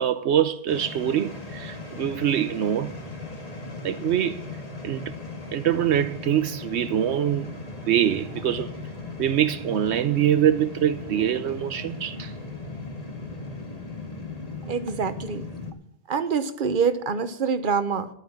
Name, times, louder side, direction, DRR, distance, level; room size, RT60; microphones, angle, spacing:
voice 1, 0.0-3.0 3.8-4.4 4.8-5.1 5.5-7.5 7.8-8.7 9.2-12.3, right 10 dB, 80° right, 0.9 m, -24 dB
sound 1, 0.7-15.7, left 3 dB, 35° left, 1.9 m, -37 dB
voice 2, 14.7-15.5 16.1-18.1, right 5 dB, 50° right, 1.2 m, -25 dB
11.5 x 8.9 x 7.2 m
omnidirectional pair, 1.1 m